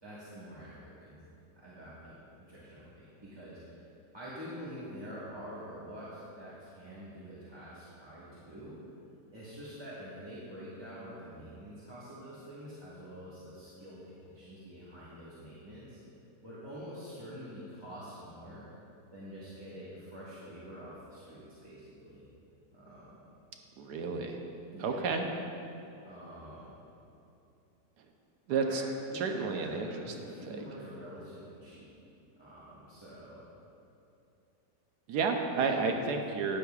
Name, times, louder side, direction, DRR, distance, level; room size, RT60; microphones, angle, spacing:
voice 1, 0.0-1.3 1.6-8.8 9.3-16.0 16.4-18.7 19.1-22.3 22.7-23.2 24.7-25.1 26.0-26.8 28.5-28.8 29.1-31.9 32.4-33.4 35.5-35.7, equal, 15° right, -10 dB, 1.3 m, -47 dB
voice 2, 23.8-24.4 24.8-25.3 28.5-28.8 29.1-29.9 35.1-36.6, right 4 dB, 80° right, 4 dB, 1.2 m, -31 dB
12.0 x 9.6 x 2.3 m, 2.7 s
omnidirectional pair, 1.7 m